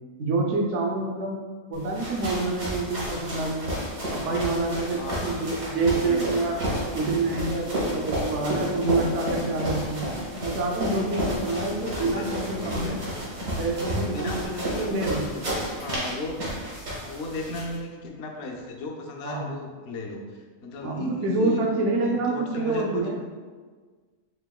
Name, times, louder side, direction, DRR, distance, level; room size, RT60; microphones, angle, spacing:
voice 1, 0.2-1.4 1.7-3.7 4.1-6.6 6.9-10.1 10.4-13.0 13.6-15.2 19.2-19.5 20.8-23.2, right 2 dB, 70° right, 1 dB, 0.8 m, -27 dB
sound 1, 1.7-17.8, equal, 90° right, 1.8 m, -31 dB
voice 2, 4.9-5.5 6.0-6.4 8.4-8.6 11.4-13.0 14.0-15.4 15.7-16.5 17.0-21.7 22.0-23.1, left 2 dB, 60° left, 1 dB, 0.7 m, -36 dB
5.7 x 2.9 x 2.3 m, 1.5 s
omnidirectional pair, 1.4 m